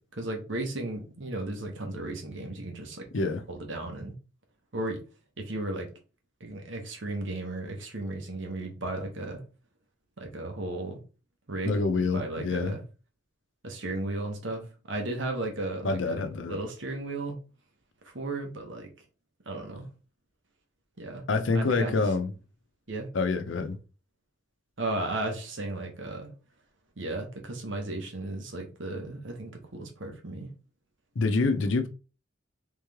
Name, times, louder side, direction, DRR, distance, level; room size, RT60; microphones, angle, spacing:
voice 1, 0.1-3.0 3.5-4.2 4.7-5.0 5.4-5.9 6.4-9.4 10.2-11.0 11.5-12.8 13.6-16.2 16.5-17.4 18.0-18.9 19.5-19.9 21.0-21.2 21.5-22.0 22.9-23.1 24.8-26.3 27.0-30.5, right 2 dB, 75° right, 1.1 m, -35 dB
voice 2, 11.6-12.8 15.8-16.6 21.3-22.3 23.1-23.8 31.2-31.9, left 3 dB, 80° left, 0.6 m, -26 dB
3.6 x 3.2 x 3.5 m
head